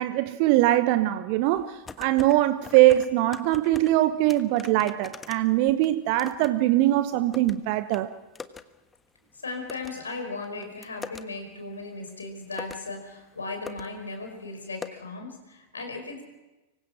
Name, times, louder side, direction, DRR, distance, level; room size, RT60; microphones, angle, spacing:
voice 1, 0.0-8.1, right 15 dB, 45° right, 1.0 m, -22 dB
sound 1, 1.6-2.4 2.6-3.9 4.3-6.5 6.8-7.6 7.9-8.0 8.4-8.6 8.9-9.0 9.7-9.9 10.4-11.2 12.1-12.2 12.5-12.9 13.3-13.4 13.7-13.9 14.1-14.2 14.8-14.9, left 5 dB, 15° left, 1.3 m, -41 dB
voice 2, 9.4-16.2, left 3 dB, 75° left, 5.2 m, -37 dB
25.5 x 24.0 x 6.2 m
figure-of-eight pair, 90°, 0 cm